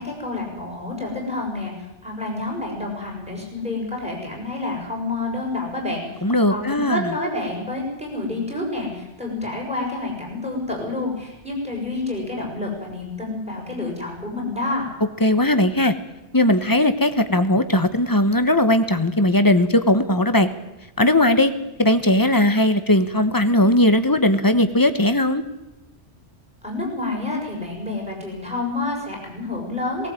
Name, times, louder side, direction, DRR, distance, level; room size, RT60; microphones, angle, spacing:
voice 1, 0.0-1.7 2.0-6.2 6.5-14.9 26.6-30.1, left 2 dB, 5° right, 0 dB, 7.0 m, -28 dB
voice 2, 6.2-7.1 15.2-15.9 16.3-20.5 21.0-21.5 21.8-25.4, left 1 dB, 20° left, 10 dB, 1.2 m, -18 dB
18.5 x 18.0 x 9.1 m, 0.97 s
omnidirectional pair, 1.2 m